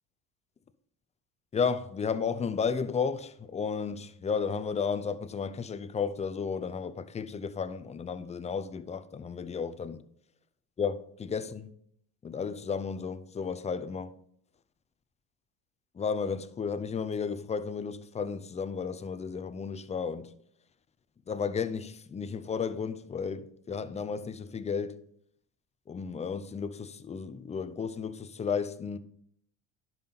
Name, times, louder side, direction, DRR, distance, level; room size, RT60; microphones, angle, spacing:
voice 1, 1.5-10.0 10.8-11.7 12.2-14.2 15.9-20.3 21.3-25.0 25.9-29.0, left 6 dB, 15° left, 0.4 m, -33 dB
10.5 x 5.7 x 4.0 m
supercardioid pair, 105°, 49 cm